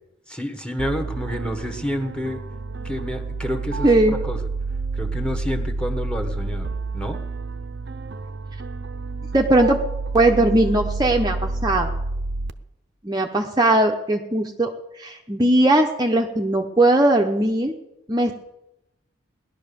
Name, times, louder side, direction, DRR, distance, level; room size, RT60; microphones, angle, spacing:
voice 1, 0.3-2.4 2.8-4.4 4.9-6.7 6.9-7.2, equal, 5° left, 7 dB, 1.3 m, -29 dB
sound 1, 0.8-12.5, right 3 dB, 55° right, 0.7 m, -29 dB
voice 2, 3.8-4.2 9.3-9.8 10.1-11.9 13.0-17.7 18.1-18.3, right 1 dB, 20° right, 2 dB, 0.8 m, -19 dB
17.5 x 11.5 x 6.9 m, 0.93 s
head